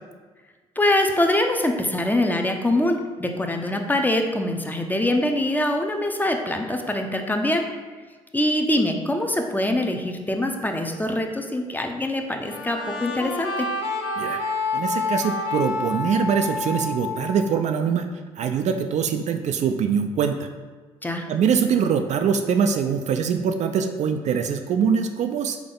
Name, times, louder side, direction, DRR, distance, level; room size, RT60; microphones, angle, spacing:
voice 1, 0.8-7.7 8.3-13.7 21.0-21.3, left 1 dB, 10° left, 4 dB, 0.6 m, -24 dB
sound 1, 12.4-17.9, left 3 dB, 85° left, 0.5 m, -28 dB
voice 2, 14.7-18.1 18.4-20.5 21.3-25.6, right 6 dB, 50° right, 7 dB, 0.4 m, -23 dB
3.7 x 3.5 x 3.8 m, 1.4 s
hypercardioid pair, 50°, 15 cm